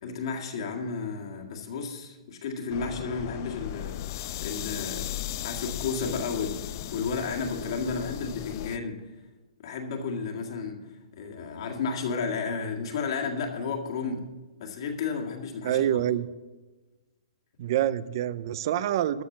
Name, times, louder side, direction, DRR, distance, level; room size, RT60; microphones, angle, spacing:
voice 1, 0.0-5.1 5.4-6.6 6.9-9.0 9.6-10.8 11.2-14.3 14.6-15.8, left 5 dB, 50° left, 1 dB, 1.9 m, -32 dB
sound 1, 2.7-8.8, left 13 dB, 35° left, 0.4 m, -36 dB
voice 2, 15.6-16.3 17.6-19.2, right 11 dB, 40° right, 17 dB, 0.5 m, -26 dB
13.0 x 6.5 x 7.2 m, 1.2 s
hypercardioid pair, 170°, 4 cm